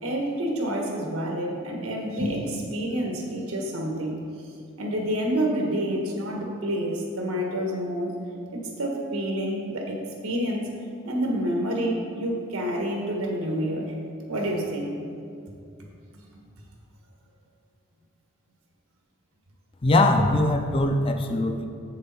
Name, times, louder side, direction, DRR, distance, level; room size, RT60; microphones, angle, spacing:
voice 1, 0.0-4.2 4.8-8.1 8.5-10.7 11.0-13.9 14.3-14.9 16.1-16.2, equal, 90° right, 0 dB, 1.5 m, -28 dB
voice 2, 19.8-21.7, left 2 dB, 25° left, 6 dB, 0.4 m, -21 dB
7.6 x 6.6 x 4.4 m, 2.4 s
head